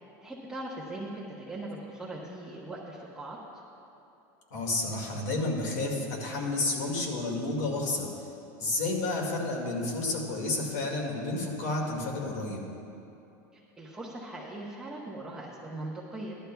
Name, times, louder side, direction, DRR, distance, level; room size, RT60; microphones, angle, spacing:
voice 1, 0.2-3.4 13.8-16.4, right 1 dB, 5° right, -7 dB, 0.8 m, -40 dB
voice 2, 4.5-8.1 8.6-12.6, left 2 dB, 75° left, -1 dB, 2.1 m, -31 dB
15.0 x 11.5 x 2.3 m, 2.8 s
supercardioid pair, 160°, 9 cm